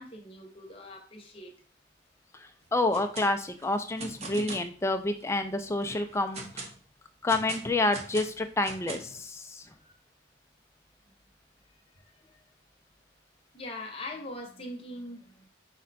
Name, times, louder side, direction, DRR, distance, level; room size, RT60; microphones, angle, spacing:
voice 1, 0.0-1.5 9.8-9.9 12.0-12.4 13.5-15.5, left 1 dB, 30° left, 1 dB, 0.8 m, -42 dB
voice 2, 2.7-6.7 7.2-9.6, left 2 dB, 15° left, 7 dB, 0.3 m, -28 dB
sound 1, 2.8-3.3 3.6-4.7 5.2-5.3 5.8-6.8 7.3-9.2, right 3 dB, 35° right, 0.6 m, -41 dB
4.9 x 2.2 x 4.0 m, 0.42 s
head